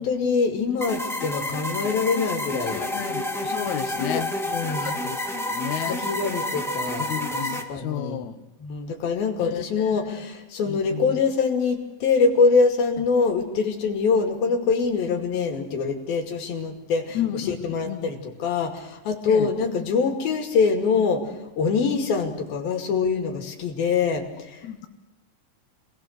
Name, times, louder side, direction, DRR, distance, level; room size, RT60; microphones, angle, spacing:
voice 1, 0.0-2.9 4.0-4.9 5.9-8.3 8.6-21.2 21.6-24.6, left 5 dB, 90° left, 2 dB, 4.2 m, -24 dB
sound 1, 0.8-7.6, left 1 dB, 5° left, 0.3 m, -29 dB
voice 2, 2.8-4.3 4.7-6.0 7.0-8.4 9.4-10.3 10.7-11.2 17.1-18.1 19.3-19.5 24.6-24.9, left 11 dB, 65° left, 8 dB, 2.0 m, -32 dB
27.5 x 20.0 x 6.5 m, 1.0 s
omnidirectional pair, 4.1 m